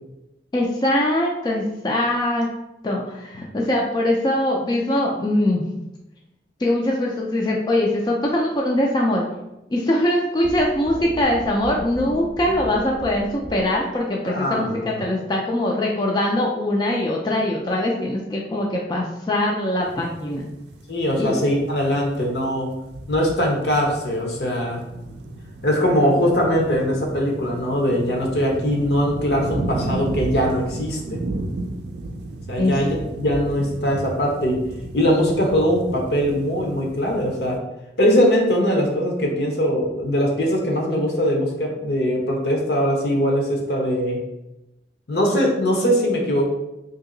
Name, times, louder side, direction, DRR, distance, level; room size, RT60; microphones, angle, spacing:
voice 1, 0.5-2.5 2.8-5.6 6.6-9.3 9.7-20.5 21.2-21.4 32.6-32.8, left 1 dB, 25° left, -2 dB, 0.3 m, -22 dB
sound 1, 10.4-14.0, right 1 dB, 25° right, 0.5 m, -36 dB
voice 2, 14.3-14.9 20.9-22.7 23.1-24.8 25.6-31.2 32.5-34.6 34.9-37.6 38.0-44.2 45.1-46.5, equal, 70° left, 0 dB, 0.9 m, -21 dB
sound 2, 19.8-37.6, right 2 dB, 70° right, 0.4 m, -34 dB
2.9 x 2.8 x 3.8 m, 0.94 s
head